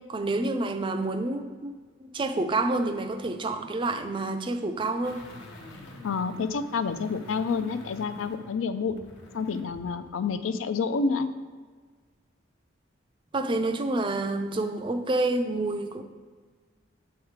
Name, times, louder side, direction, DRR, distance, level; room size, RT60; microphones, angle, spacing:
voice 1, 0.0-1.7 2.0-5.3 13.3-16.0, right 2 dB, 25° right, 8 dB, 0.3 m, -28 dB
sound 1, 5.0-9.9 10.3-10.4, left 1 dB, 70° left, 0.9 m, -47 dB
voice 2, 6.0-9.0 9.3-11.3, left 5 dB, 85° left, 11 dB, 0.4 m, -28 dB
7.2 x 3.6 x 4.6 m, 1.5 s
head